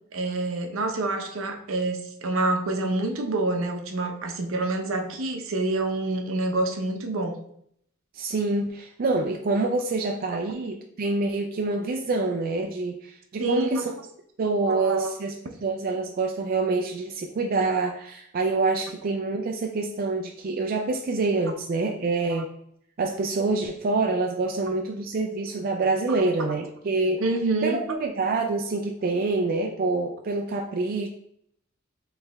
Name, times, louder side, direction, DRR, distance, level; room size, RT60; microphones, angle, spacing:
voice 1, 0.1-7.4 13.4-13.9 14.7-15.1 22.3-22.4 26.1-26.2 27.2-27.8, right 2 dB, 75° right, 4 dB, 0.7 m, -27 dB
voice 2, 8.1-13.9 14.4-22.5 23.0-27.2 27.6-31.1, right 3 dB, 45° right, 2 dB, 0.4 m, -26 dB
4.7 x 3.3 x 3.4 m, 0.70 s
head